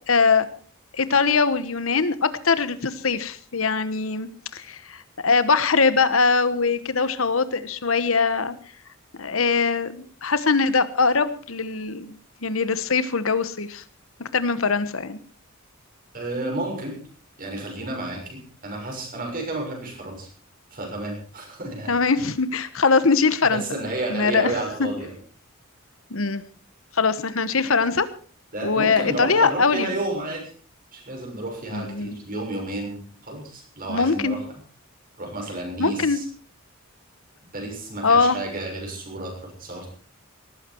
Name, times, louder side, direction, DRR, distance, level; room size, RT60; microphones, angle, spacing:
voice 1, 0.1-0.5 0.9-8.5 9.2-9.9 10.2-13.8 14.2-15.2 21.9-23.6 24.1-24.5 24.8-24.9 26.1-26.4 26.9-28.1 28.6-29.9 31.7-32.1 33.9-34.4 35.8-36.2 38.0-38.4, left 4 dB, 75° left, 14 dB, 1.2 m, -22 dB
voice 2, 16.1-17.0 17.4-20.3 20.7-21.9 23.4-25.1 28.5-30.5 30.9-34.6 35.2-36.2 37.5-39.9, right 2 dB, 45° right, 2 dB, 6.7 m, -31 dB
18.5 x 15.0 x 4.6 m, 0.42 s
head